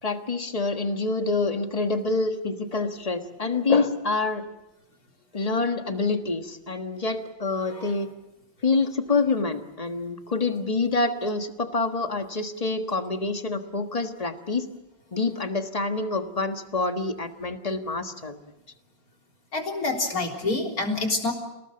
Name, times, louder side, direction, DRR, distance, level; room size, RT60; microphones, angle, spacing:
voice 1, 0.0-4.4 5.3-8.1 8.6-14.7 15.1-18.4, left 3 dB, 20° left, 7 dB, 1.3 m, -26 dB
voice 2, 19.5-21.3, left 3 dB, 45° left, 2 dB, 4.1 m, -27 dB
28.5 x 19.0 x 7.8 m, 0.96 s
omnidirectional pair, 2.2 m